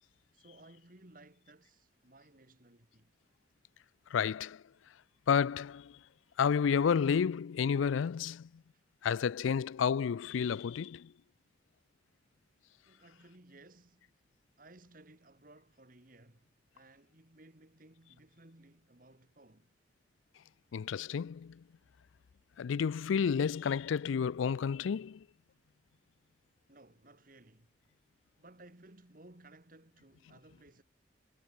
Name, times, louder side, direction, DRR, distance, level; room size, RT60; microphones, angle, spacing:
voice 1, 0.3-3.1 8.7-8.8 12.8-14.1 14.6-19.7 26.7-27.7 28.4-30.8, right 2 dB, 45° right, 2.3 m, -59 dB
voice 2, 4.1-4.6 5.3-6.0 6.4-8.5 9.0-11.1 20.7-21.6 22.6-25.2, left 7 dB, 90° left, 0.4 m, -31 dB
head